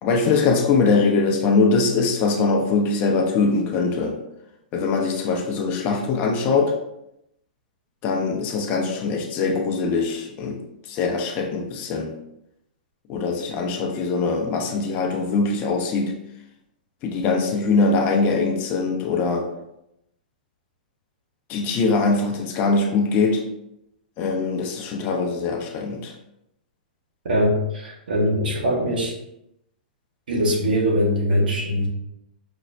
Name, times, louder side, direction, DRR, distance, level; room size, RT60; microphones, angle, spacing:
voice 1, 0.0-4.2 4.7-6.7 8.0-12.1 13.1-16.2 17.0-19.5 21.5-23.4 24.2-26.1, left 4 dB, 35° left, 2 dB, 0.6 m, -22 dB
voice 2, 27.2-29.1 30.3-31.9, equal, 70° right, -2 dB, 1.1 m, -22 dB
5.2 x 2.0 x 2.5 m, 0.83 s
hypercardioid pair, 110°, 5 cm